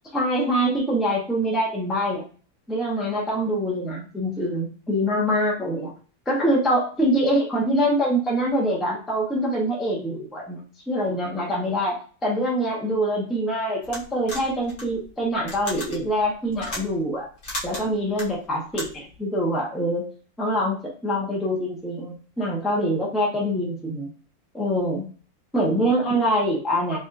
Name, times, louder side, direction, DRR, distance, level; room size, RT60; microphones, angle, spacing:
voice 1, 0.1-2.2 2.7-5.9 6.3-10.6 10.9-11.9 12.2-17.3 17.6-20.0 20.4-24.1 24.5-25.0 25.5-27.0, equal, ahead, -4 dB, 0.8 m, -24 dB
sound 1, 13.8-19.2, left 1 dB, 50° left, 1.4 m, -36 dB
4.3 x 3.0 x 2.5 m, 0.40 s
omnidirectional pair, 1.6 m